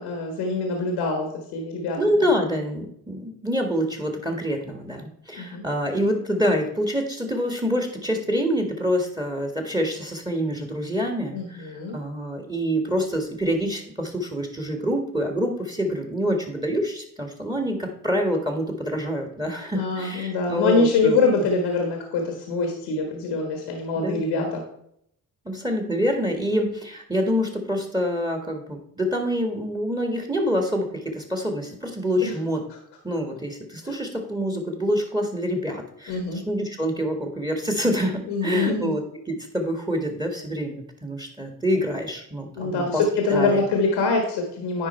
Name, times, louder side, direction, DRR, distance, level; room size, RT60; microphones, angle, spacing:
voice 1, 0.0-2.0 5.4-5.6 11.3-12.0 19.7-24.6 32.2-32.3 33.8-33.9 36.1-36.4 38.3-38.9 42.6-44.9, left 3 dB, 85° left, 2 dB, 1.5 m, -24 dB
voice 2, 2.0-21.2 24.0-24.5 25.5-32.6 33.0-39.0 39.3-43.0 43.3-43.6, equal, 10° right, 4 dB, 1.8 m, -26 dB
9.9 x 4.4 x 4.4 m, 0.71 s
supercardioid pair, 65°, 40 cm